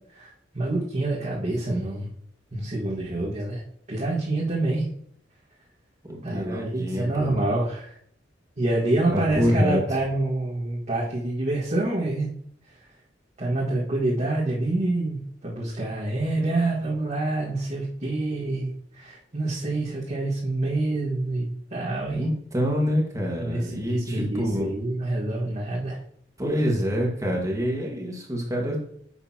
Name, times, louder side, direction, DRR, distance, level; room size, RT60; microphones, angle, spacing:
voice 1, 0.1-2.1 2.5-3.6 3.9-4.8 6.2-7.9 8.6-12.3 13.4-22.2 23.4-26.0, right 2 dB, 40° right, -7 dB, 1.8 m, -27 dB
voice 2, 6.1-7.3 9.1-9.8 22.1-24.7 26.4-28.8, equal, 20° right, -1 dB, 1.7 m, -26 dB
10.5 x 6.7 x 2.9 m, 0.65 s
head